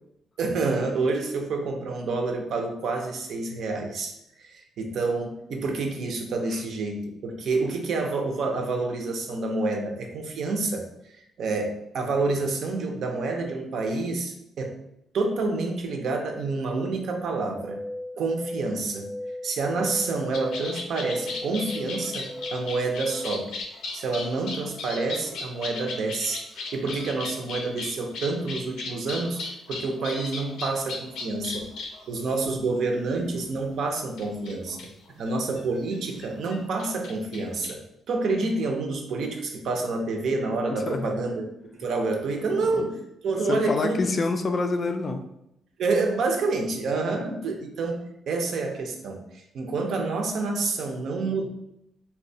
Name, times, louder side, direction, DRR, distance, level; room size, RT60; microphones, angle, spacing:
voice 1, 0.4-4.1 4.4-14.8 15.1-17.8 18.2-19.1 19.4-23.5 23.9-29.4 29.7-31.7 32.1-34.9 35.2-37.8 38.1-41.5 41.7-43.0 43.2-44.1 45.8-51.5, right 3 dB, 65° right, 3 dB, 0.6 m, -28 dB
sound 1, 17.5-23.6, left 1 dB, 15° right, 0.6 m, -37 dB
sound 2, 20.3-32.5 33.6-33.7 34.2-35.6 35.9-36.0 36.2-37.7, left 3 dB, 85° left, 0.6 m, -36 dB
voice 2, 40.7-41.2 42.8-42.9 43.5-45.2 47.0-47.1, left 3 dB, 35° left, 6 dB, 0.3 m, -27 dB
4.1 x 2.2 x 2.6 m, 0.80 s
cardioid pair, 120°, 0 cm